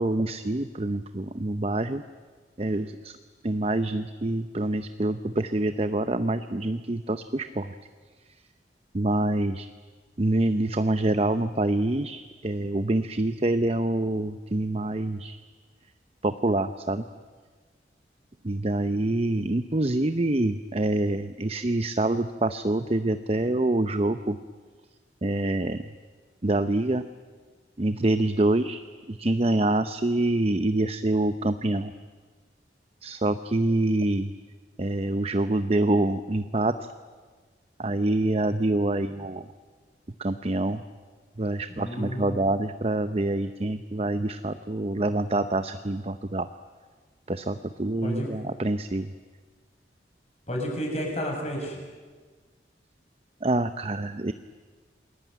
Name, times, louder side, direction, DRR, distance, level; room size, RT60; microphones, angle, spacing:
voice 1, 0.0-2.0 2.6-3.1 3.4-7.7 8.9-9.7 10.2-15.4 16.2-17.0 18.4-24.4 25.2-25.8 26.4-27.0 27.8-28.8 29.1-31.9 33.0-34.3 34.8-36.9 37.8-39.4 40.2-40.8 41.4-46.5 47.3-49.1 53.4-54.3, right 2 dB, 35° right, 10 dB, 0.7 m, -26 dB
voice 2, 41.7-42.4 48.0-48.3 50.5-51.8, equal, 40° left, 1 dB, 7.2 m, -31 dB
28.5 x 21.0 x 9.3 m, 1.5 s
head